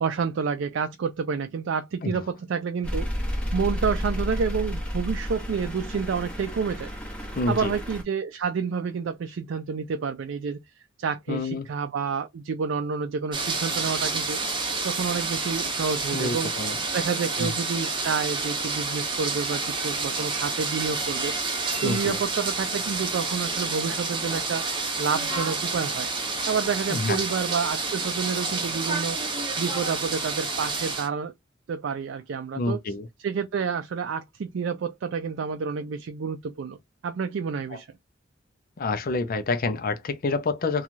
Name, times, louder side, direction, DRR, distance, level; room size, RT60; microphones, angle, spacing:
voice 1, 0.0-3.1 3.5-6.9 7.5-14.4 14.8-16.5 16.9-21.3 21.8-26.1 26.5-29.2 29.6-31.3 31.7-32.8 33.2-36.8 37.0-37.9, right 6 dB, 75° right, 0.4 m, -29 dB
sound 1, 2.8-8.0, equal, 5° left, 0.8 m, -31 dB
voice 2, 7.4-7.7 11.3-11.7 16.1-16.8 17.4-17.5 21.8-22.2 26.9-27.2 32.5-33.1 37.7-37.8 38.8-40.8, left 3 dB, 50° left, 0.5 m, -28 dB
sound 2, 13.3-31.1, right 3 dB, 25° right, 0.8 m, -29 dB
3.0 x 2.3 x 2.5 m
head